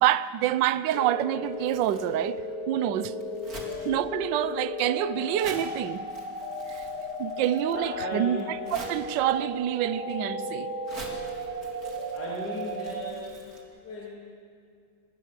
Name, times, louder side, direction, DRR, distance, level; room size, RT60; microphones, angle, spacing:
voice 1, 0.0-3.1 3.8-6.0 7.2-8.4 8.7-10.7, right 12 dB, 70° right, 1.3 m, -27 dB
sound 1, 0.9-13.1, left 1 dB, 20° left, 2.1 m, -35 dB
Crumpling crinkling, 1.4-13.6, right 2 dB, 45° right, 3.4 m, -48 dB
voice 2, 3.6-4.0 7.7-8.5 12.1-14.2, left 2 dB, 50° left, 3.7 m, -37 dB
25.0 x 19.5 x 6.8 m
omnidirectional pair, 2.3 m